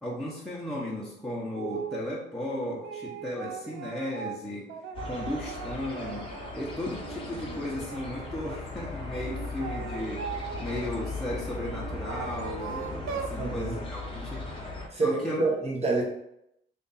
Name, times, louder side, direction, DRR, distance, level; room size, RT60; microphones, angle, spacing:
voice 1, 0.0-4.7 5.0-10.2 10.6-14.5 14.9-15.4, left 1 dB, ahead, -6 dB, 1.0 m, -35 dB
sound 1, 1.6-2.0 2.5-6.6 7.0-8.6 9.2-10.9 11.7-13.4, right 7 dB, 85° right, 0.4 m, -39 dB
sound 2, 4.9-14.9, left 3 dB, 25° left, 0.9 m, -38 dB
voice 2, 13.4-13.8 14.9-16.0, right 3 dB, 35° right, -1 dB, 1.2 m, -27 dB
3.4 x 2.6 x 4.1 m, 0.79 s
cardioid pair, 90°, 20 cm